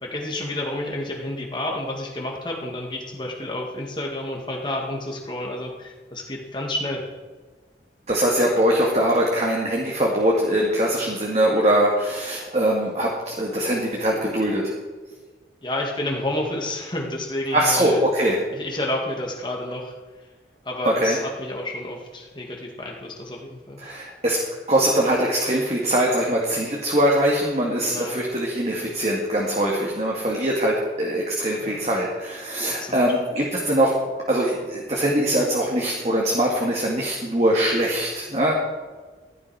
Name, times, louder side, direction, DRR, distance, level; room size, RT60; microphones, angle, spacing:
voice 1, 0.0-7.1 15.6-18.0 18.5-19.9 20.7-23.8 27.8-28.2 31.6-31.7 32.8-33.1, left 1 dB, 25° left, 0 dB, 1.9 m, -30 dB
voice 2, 8.1-14.7 17.5-18.4 20.8-21.2 23.8-24.4 24.7-34.0 34.3-38.5, right 1 dB, 40° right, -2 dB, 2.0 m, -22 dB
16.0 x 11.5 x 4.8 m, 1.4 s
head